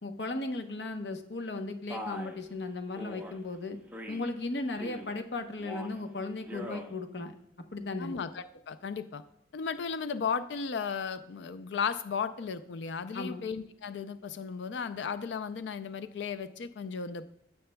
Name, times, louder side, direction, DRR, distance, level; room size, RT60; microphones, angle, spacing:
voice 1, 0.0-3.8 4.1-7.3 7.7-8.1 13.1-13.5, left 2 dB, 70° left, 6 dB, 0.9 m, -36 dB
Male speech man speaking, 1.9-2.4 3.0-3.4 3.9-4.3 4.7-5.2 5.6-6.0 6.4-6.9, equal, 10° right, 0.8 m, -41 dB
voice 2, 8.0-9.2 9.5-17.2, left 6 dB, 90° left, 12 dB, 0.4 m, -35 dB
16.0 x 6.6 x 2.2 m, 0.73 s
head